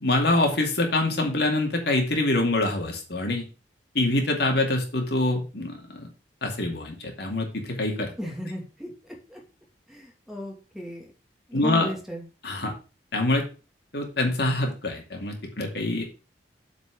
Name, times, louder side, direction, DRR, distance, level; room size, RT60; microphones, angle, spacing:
voice 1, 0.0-3.4 3.9-6.1 6.4-8.1 11.5-11.9 12.4-12.7 13.1-13.5 13.9-16.0, left 2 dB, 65° left, 2 dB, 2.4 m, -25 dB
voice 2, 8.2-8.9 9.3-9.4 9.9-11.1 11.5-12.2, equal, ahead, -1 dB, 2.7 m, -35 dB
8.2 x 5.1 x 6.3 m, 0.33 s
head